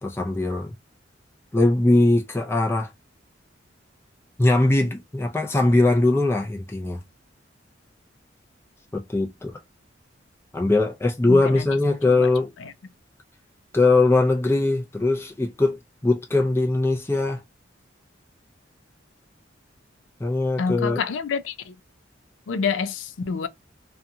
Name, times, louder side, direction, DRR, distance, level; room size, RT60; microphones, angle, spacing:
voice 1, 0.0-0.7 1.5-2.9 4.4-7.0 8.9-9.5 10.5-12.5 13.7-17.4 20.2-21.0, left 2 dB, 15° left, 0.5 m, -21 dB
voice 2, 11.3-11.7 12.0-12.3 12.6-12.7 20.6-21.7 22.5-23.5, left 5 dB, 85° left, 0.4 m, -28 dB
2.7 x 2.3 x 2.6 m
head